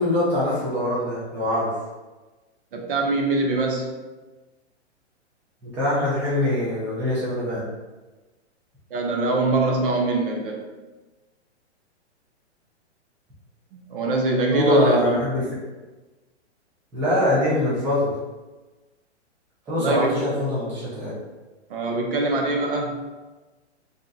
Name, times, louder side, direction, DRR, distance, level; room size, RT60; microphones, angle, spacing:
voice 1, 0.0-1.7 5.6-7.6 14.5-15.4 16.9-18.1 19.7-21.1, left 1 dB, 5° right, -10 dB, 0.5 m, -23 dB
voice 2, 2.7-3.9 8.9-10.7 13.7-15.2 19.7-20.3 21.7-23.1, right 2 dB, 50° right, 1 dB, 0.6 m, -23 dB
2.5 x 2.2 x 3.9 m, 1.2 s
hypercardioid pair, 145°, 35 cm